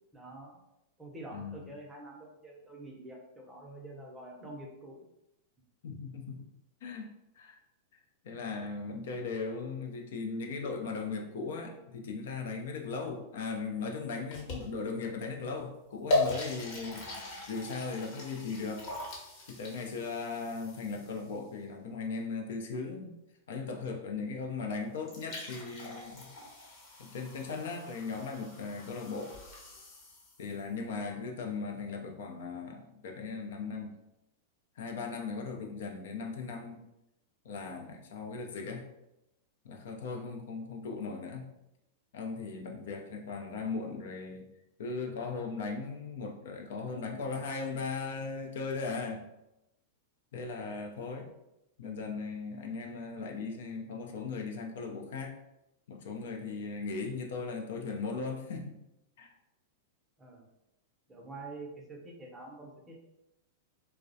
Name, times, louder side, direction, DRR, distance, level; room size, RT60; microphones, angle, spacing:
voice 1, 0.1-0.6 1.0-5.0 60.2-60.5 61.1-63.0, right 2 dB, 10° right, -1 dB, 0.6 m, -46 dB
voice 2, 1.3-1.6 5.8-6.4 6.8-7.1 7.4-7.6 8.2-17.1 17.5-18.9 19.5-23.1 23.5-26.3 27.0-29.4 30.4-33.9 34.8-36.8 37.4-38.9 39.6-41.5 42.1-44.4 44.8-49.2 50.3-51.3 51.8-55.3 55.9-58.8 59.2-59.3, left 4 dB, 75° left, 2 dB, 0.4 m, -38 dB
sound 1, 14.3-15.0 15.6-15.7 16.1-21.4 24.7-24.8 25.0-30.6, left 2 dB, 50° left, 0.9 m, -38 dB
2.3 x 2.0 x 2.6 m, 0.88 s
hypercardioid pair, 120°, 0 cm